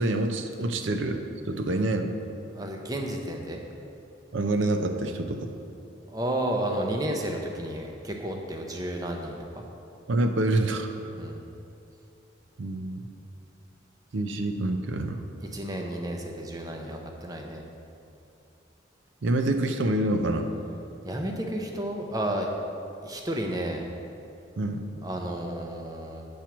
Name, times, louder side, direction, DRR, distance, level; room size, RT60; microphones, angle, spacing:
voice 1, 0.0-2.2 4.3-5.5 10.1-10.9 12.6-13.0 14.1-15.2 19.2-20.5 24.6-25.0, right 2 dB, 75° right, 6 dB, 0.5 m, -27 dB
voice 2, 2.5-3.6 6.1-9.6 11.2-11.4 15.4-17.6 21.0-22.5 23.0-23.9 25.0-26.3, right 1 dB, 20° right, 1 dB, 0.6 m, -32 dB
8.6 x 4.5 x 6.0 m, 2.7 s
head